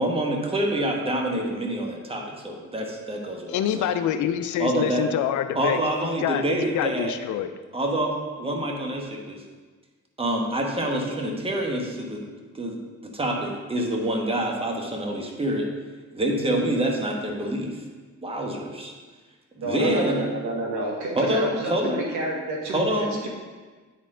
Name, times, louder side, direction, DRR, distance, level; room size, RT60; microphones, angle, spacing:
voice 1, 0.0-3.9 4.6-5.0 5.5-7.1 7.7-9.4 10.2-12.2 12.5-15.7 16.1-17.8 18.2-18.9 19.5-20.2 21.1-22.0 22.7-23.3, right 1 dB, 20° right, 0 dB, 1.3 m, -26 dB
voice 2, 3.5-5.8 6.2-6.4 6.7-7.5, left 10 dB, 75° left, 10 dB, 0.5 m, -26 dB
voice 3, 19.6-22.8 23.2-23.3, right 1 dB, 75° right, -2 dB, 1.7 m, -29 dB
9.2 x 4.3 x 3.8 m, 1.4 s
cardioid pair, 90°, 30 cm